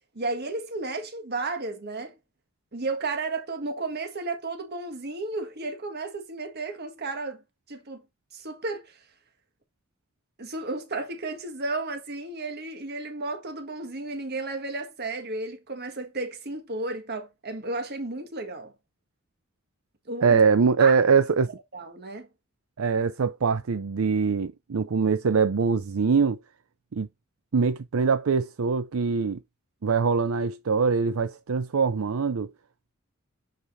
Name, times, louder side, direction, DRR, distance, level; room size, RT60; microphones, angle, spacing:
voice 1, 0.1-2.2 2.7-7.4 7.7-8.0 8.3-9.0 10.4-18.7 20.1-20.4 20.8-20.9 21.7-22.3, right 3 dB, 50° right, 1.6 m, -33 dB
voice 2, 20.2-21.5 22.8-26.4 26.9-27.1 27.5-29.4 29.8-32.5, right 5 dB, 80° right, 0.5 m, -23 dB
10.5 x 4.9 x 2.6 m
head